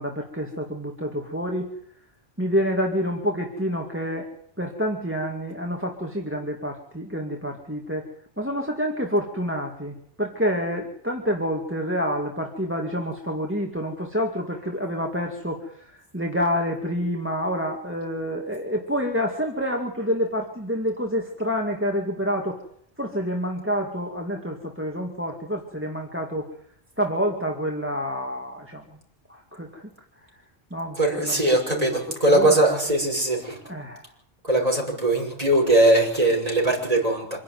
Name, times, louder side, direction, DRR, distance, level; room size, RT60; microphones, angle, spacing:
voice 1, 0.0-1.7 2.4-4.3 4.6-8.0 8.4-22.6 23.0-26.5 27.0-28.8 29.3-29.9 30.7-32.6 33.7-34.0, equal, 10° right, 1 dB, 2.2 m, -28 dB
voice 2, 31.0-33.6 34.4-37.4, right 1 dB, 35° right, 0 dB, 6.3 m, -20 dB
26.0 x 11.5 x 9.5 m, 0.70 s
omnidirectional pair, 1.1 m